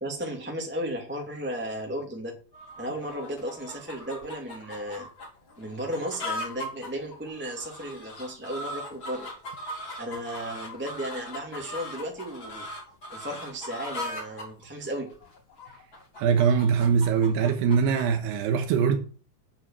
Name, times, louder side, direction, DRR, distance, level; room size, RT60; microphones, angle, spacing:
voice 1, 0.0-2.4 2.8-5.1 5.6-9.3 10.0-12.7 13.1-15.1, equal, 5° right, 1.5 m, -34 dB
sound 1, 2.5-18.1, left 1 dB, 30° left, 3.3 m, -39 dB
voice 2, 16.2-19.0, right 6 dB, 85° right, 3.3 m, -22 dB
9.0 x 8.9 x 7.5 m
omnidirectional pair, 4.7 m